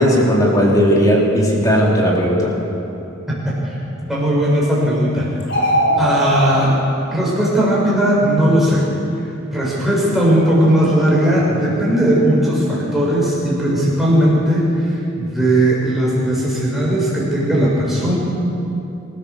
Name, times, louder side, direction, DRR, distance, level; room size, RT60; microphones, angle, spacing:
voice 1, 0.0-2.5, equal, 15° left, -3 dB, 3.6 m, -15 dB
voice 2, 3.4-3.7 4.1-5.3 6.0-6.7 7.1-8.9 9.5-18.2, right 1 dB, ahead, -7 dB, 6.8 m, -17 dB
sound 1, 5.4-6.6, equal, 60° left, 5.4 m, -18 dB
26.5 x 14.5 x 7.2 m, 2.8 s
head